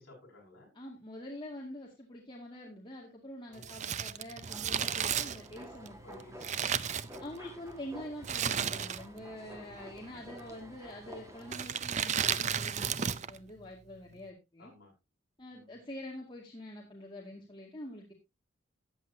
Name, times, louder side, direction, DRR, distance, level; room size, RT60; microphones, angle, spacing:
voice 1, 0.0-0.7 3.5-4.0 6.0-6.8 9.5-10.0 14.6-14.9 15.5-15.8, left 2 dB, 50° left, -2 dB, 7.0 m, -56 dB
voice 2, 0.7-6.4 7.2-14.7 15.4-18.1, left 1 dB, 25° left, -2 dB, 2.1 m, -46 dB
Crumpling crinkling, 3.6-7.6 8.2-9.3 9.5-9.6 10.4-10.8 11.4-13.4 13.6-13.7, right 8 dB, 35° right, 0.5 m, -33 dB
sound 1, 4.4-11.6, equal, 15° right, 1.7 m, -51 dB
14.0 x 9.4 x 2.7 m, 0.23 s
head